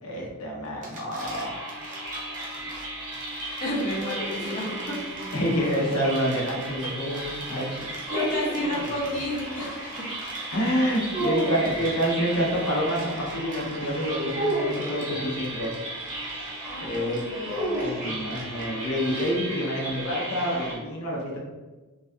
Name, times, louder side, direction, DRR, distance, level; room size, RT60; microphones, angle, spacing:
voice 1, 0.0-1.7 5.3-7.8 10.5-15.7 16.8-17.2 17.8-21.4, equal, 85° left, -3 dB, 0.9 m, -27 dB
sound 1, 0.6-19.7, right 2 dB, 35° right, 0.6 m, -45 dB
sound 2, 1.2-20.8, right 1 dB, 80° right, 1.0 m, -36 dB
voice 2, 3.6-5.0 8.1-10.1 16.6-17.7, equal, 40° left, -5 dB, 0.6 m, -31 dB
sound 3, 3.7-5.6 8.1-9.3 11.1-11.9 14.3-15.4 17.4-18.6, equal, 55° right, 1.2 m, -32 dB
3.2 x 2.3 x 2.6 m, 1.2 s
head